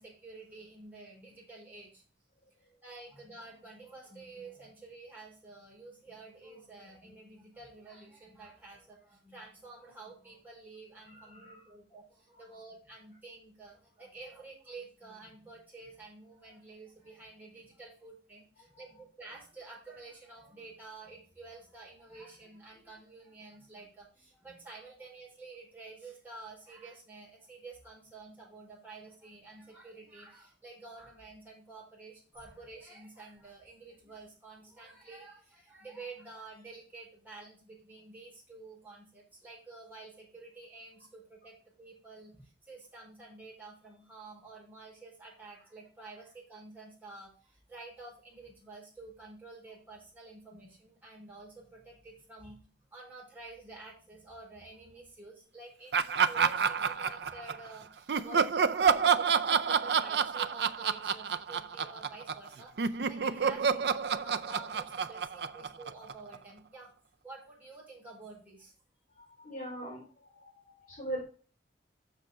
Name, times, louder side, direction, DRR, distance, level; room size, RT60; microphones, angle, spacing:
voice 1, 0.0-2.0 2.8-52.6 52.9-66.9 67.2-68.7, right 3 dB, 10° right, -4 dB, 4.5 m, -50 dB
voice 2, 11.1-11.7 18.8-18.9 69.2-71.2, right 1 dB, 50° left, -5 dB, 3.6 m, -42 dB
Laughter, 55.9-57.7 58.1-62.5 62.8-66.4, right 6 dB, 65° right, 0.5 m, -28 dB
7.4 x 6.3 x 4.3 m, 0.38 s
head